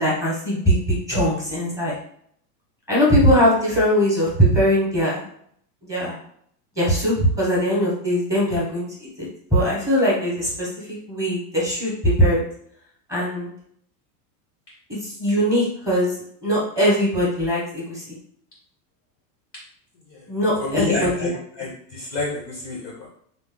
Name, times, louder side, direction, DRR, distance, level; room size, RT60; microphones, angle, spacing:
voice 1, 0.0-1.9 2.9-5.2 5.8-6.1 6.8-12.4 13.1-13.5 14.9-16.1 16.4-18.2 20.3-21.3, equal, 5° right, -6 dB, 0.7 m, -21 dB
voice 2, 20.6-23.1, left 3 dB, 20° left, -4 dB, 0.3 m, -28 dB
2.9 x 2.1 x 3.5 m, 0.66 s
supercardioid pair, 155°, 49 cm